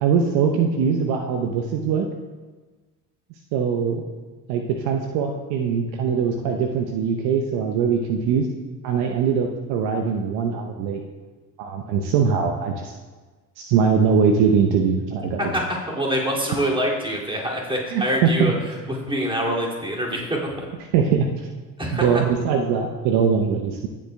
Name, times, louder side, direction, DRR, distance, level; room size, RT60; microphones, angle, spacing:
voice 1, 0.0-2.1 3.5-4.0 4.5-8.5 8.8-11.0 11.6-12.9 13.6-15.4 17.9-18.5 20.9-21.5 21.9-23.9, right 6 dB, 55° right, 4 dB, 0.9 m, -21 dB
voice 2, 15.4-18.5 18.9-20.7 21.8-22.2, equal, 10° right, -3 dB, 2.5 m, -25 dB
17.5 x 7.3 x 2.3 m, 1.3 s
figure-of-eight pair, 60°, 48 cm